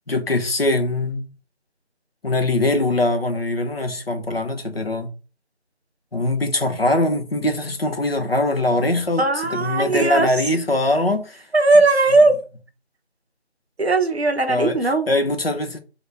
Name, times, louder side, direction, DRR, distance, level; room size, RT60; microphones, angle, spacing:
voice 1, 0.1-1.3 2.2-5.1 6.1-11.4 14.5-15.8, left 2 dB, 60° left, 0.6 m, -22 dB
voice 2, 9.2-10.3 11.5-12.4 13.8-15.1, right 2 dB, 65° right, 0.6 m, -17 dB
2.1 x 2.0 x 3.3 m
figure-of-eight pair, 175°, 34 cm